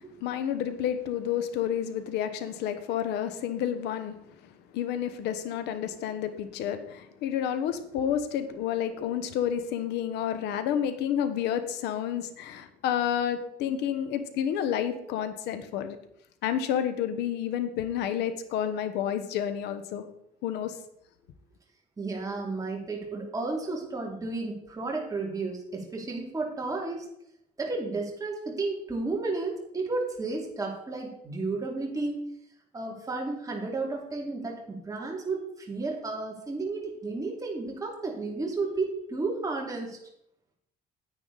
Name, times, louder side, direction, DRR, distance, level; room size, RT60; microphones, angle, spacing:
voice 1, 0.0-16.0 16.4-20.0 20.4-20.8, left 9 dB, 85° left, 10 dB, 1.2 m, -30 dB
voice 2, 22.0-27.0 27.6-32.2 32.7-40.0, right 3 dB, 20° right, -1 dB, 2.7 m, -32 dB
9.8 x 9.2 x 4.1 m, 0.77 s
cardioid pair, 110°, 17 cm